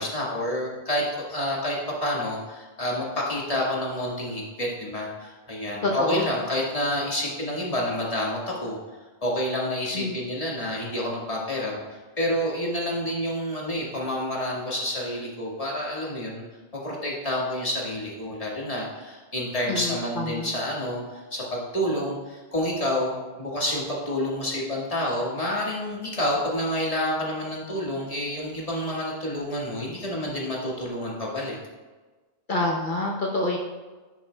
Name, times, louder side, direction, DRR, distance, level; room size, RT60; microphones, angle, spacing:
voice 1, 0.0-8.8 9.2-11.8 12.2-16.4 16.7-31.6, left 1 dB, 35° left, -4 dB, 1.8 m, -28 dB
voice 2, 5.8-6.2 9.9-10.1 19.7-20.5 32.5-33.6, left 2 dB, 55° left, -1 dB, 1.0 m, -27 dB
10.0 x 8.0 x 2.3 m, 1.3 s
omnidirectional pair, 1.1 m